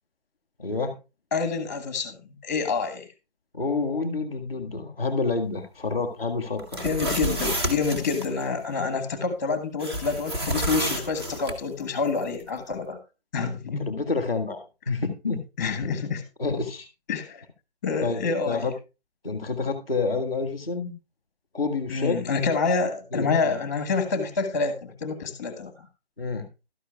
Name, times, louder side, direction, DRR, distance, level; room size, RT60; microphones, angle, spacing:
voice 1, 0.6-0.9 3.5-6.8 13.8-15.4 16.4-16.9 18.0-18.7 19.2-20.9 21.5-22.2 23.1-23.6 26.2-26.5, left 4 dB, 5° right, -12 dB, 0.6 m, -28 dB
voice 2, 1.3-2.2 2.4-3.1 6.8-13.0 13.3-13.9 15.6-16.2 17.1-17.4 17.8-18.7 21.9-25.7, left 4 dB, 15° left, 10 dB, 1.1 m, -27 dB
sound 1, 6.6-8.3 9.8-11.6, right 1 dB, 25° right, 1.1 m, -29 dB
12.5 x 10.0 x 2.3 m, 0.28 s
figure-of-eight pair, 160°, 32 cm